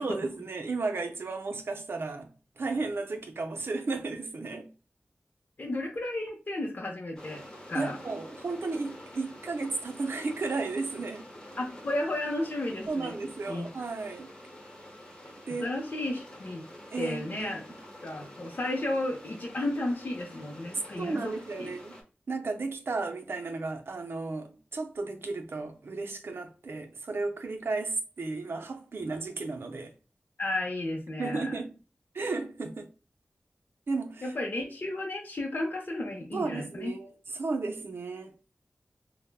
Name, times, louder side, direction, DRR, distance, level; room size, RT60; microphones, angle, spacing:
voice 1, 0.0-2.3 2.6-4.7 7.7-11.2 12.9-14.3 15.5-15.7 16.9-17.5 21.0-22.0 22.3-29.9 31.2-31.8 32.1-32.9 33.9-34.3 36.3-38.3, right 3 dB, 75° right, 0.5 m, -34 dB
voice 2, 5.6-7.4 7.7-8.0 11.6-13.2 13.5-13.6 15.6-16.6 17.0-17.6 18.0-21.7 30.4-31.5 34.2-36.9, left 1 dB, 50° left, 0.5 m, -33 dB
sound 1, 7.2-22.0, left 1 dB, 20° left, 1.0 m, -48 dB
3.3 x 2.1 x 2.3 m
wide cardioid pair, 70°, 4 cm